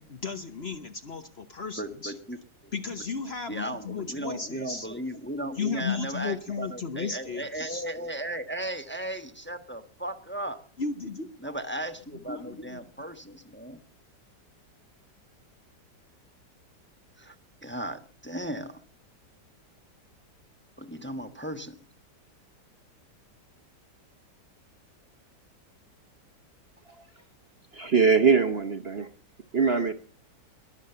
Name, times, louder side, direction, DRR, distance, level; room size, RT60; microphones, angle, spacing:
voice 1, 0.0-2.1 2.7-4.9 5.6-7.8 10.8-11.5 12.4-12.9, left 5 dB, 45° left, 8 dB, 1.1 m, -34 dB
voice 2, 1.8-2.4 2.6-2.7 3.5-10.6 11.4-13.8 17.2-17.4 17.6-18.8 20.8-21.8, right 1 dB, 10° left, 7 dB, 0.9 m, -36 dB
voice 3, 27.7-29.1 29.5-29.9, right 5 dB, 45° right, 8 dB, 1.0 m, -22 dB
21.5 x 7.4 x 6.8 m, 0.41 s
omnidirectional pair, 1.9 m